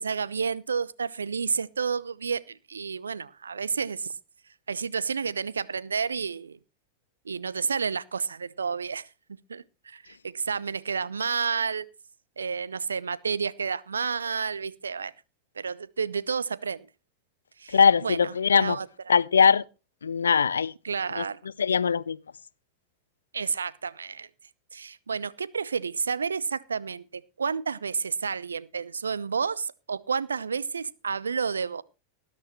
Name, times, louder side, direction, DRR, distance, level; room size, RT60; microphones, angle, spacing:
voice 1, 0.0-4.1 4.7-6.6 7.3-9.0 9.5-11.9 12.4-15.1 15.6-16.9 17.6-18.9 20.8-21.4 23.3-24.3 24.7-31.8, right 5 dB, 75° right, 0.7 m, -30 dB
voice 2, 17.7-18.8 19.1-19.6 20.0-20.7 21.2-21.3 21.6-22.2, left 6 dB, 70° left, 0.5 m, -21 dB
19.5 x 11.0 x 3.1 m
figure-of-eight pair, 90°, 0 cm